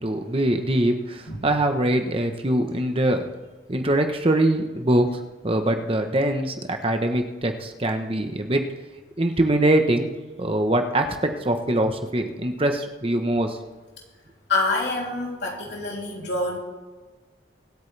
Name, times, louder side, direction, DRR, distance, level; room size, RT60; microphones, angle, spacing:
voice 1, 0.0-3.2 3.7-8.7 9.2-13.6, right 1 dB, 30° right, 5 dB, 1.0 m, -23 dB
voice 2, 14.5-16.6, left 2 dB, 65° left, -2 dB, 3.2 m, -26 dB
23.5 x 8.9 x 3.4 m, 1.3 s
head